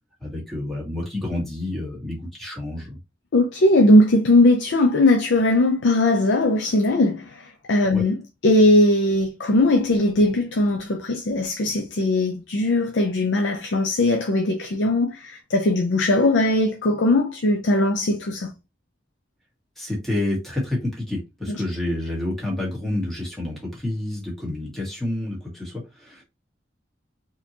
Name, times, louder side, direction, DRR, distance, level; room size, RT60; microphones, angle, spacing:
voice 1, 0.2-3.0 7.9-8.0 19.8-26.2, left 1 dB, ahead, 1.6 m, -29 dB
voice 2, 3.3-7.4 7.7-18.5 21.5-21.6, left 1 dB, 80° left, 0.5 m, -19 dB
4.2 x 2.9 x 2.8 m
head